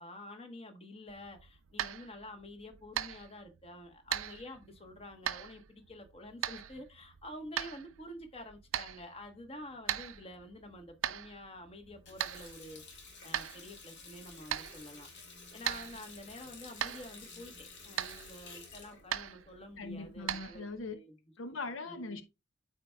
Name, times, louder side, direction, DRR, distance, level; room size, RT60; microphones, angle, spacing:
voice 1, 0.0-15.1 15.5-20.6 20.9-21.1 21.9-22.2, left 1 dB, 30° left, 1.2 m, -49 dB
sound 1, 1.1-20.9, right 10 dB, 80° right, 0.5 m, -41 dB
Water tap faucet, 11.9-20.3, left 4 dB, 55° left, 2.3 m, -52 dB
voice 2, 19.8-21.0 21.4-22.2, left 3 dB, 75° left, 0.7 m, -40 dB
12.5 x 4.5 x 2.3 m
head